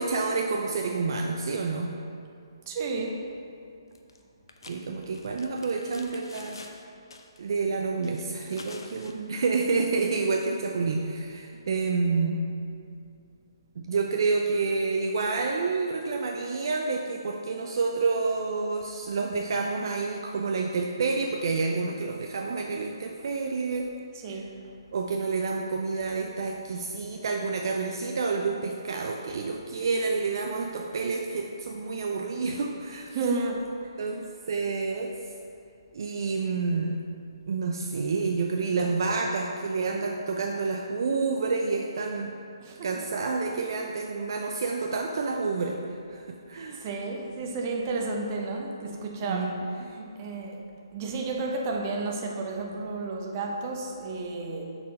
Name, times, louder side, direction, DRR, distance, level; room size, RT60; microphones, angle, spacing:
voice 1, 0.0-1.9 4.7-6.6 7.4-12.4 13.8-23.9 24.3-24.4 24.9-33.2 34.0-35.2 35.9-37.0 37.5-42.3 42.8-45.8 46.1-46.8 49.2-49.9, right 4 dB, 60° right, 1 dB, 0.5 m, -29 dB
voice 2, 2.7-3.2 24.2-24.6 33.1-33.9 42.6-42.9 46.7-49.5 49.9-50.6 50.9-54.6, right 3 dB, 35° right, 1 dB, 0.9 m, -32 dB
sound 1, 4.0-4.2 4.5-6.8 7.1-7.4 8.0-9.2, left 3 dB, 70° left, 0.7 m, -47 dB
6.5 x 4.3 x 5.5 m, 2.5 s
hypercardioid pair, 145°, 2 cm